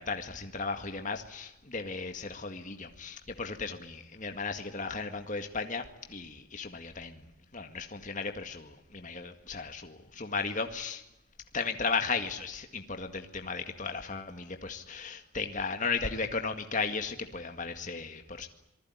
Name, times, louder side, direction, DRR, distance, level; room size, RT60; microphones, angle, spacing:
voice 1, 0.0-7.2 7.5-11.0 11.5-18.5, left 4 dB, 35° left, 5 dB, 2.0 m, -35 dB
27.0 x 20.0 x 9.7 m, 0.87 s
head